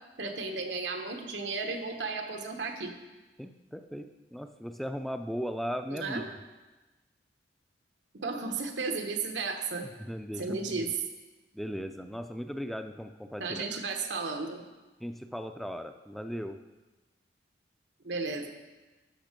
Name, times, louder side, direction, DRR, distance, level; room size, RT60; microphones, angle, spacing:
voice 1, 0.2-2.9 5.9-6.3 8.1-9.9 10.4-10.9 13.4-14.6 18.0-18.5, right 4 dB, 85° right, 4 dB, 1.2 m, -34 dB
voice 2, 3.4-6.3 10.0-10.9 11.5-13.8 15.0-16.6, equal, ahead, 7 dB, 0.4 m, -37 dB
12.0 x 6.6 x 5.2 m, 1.2 s
head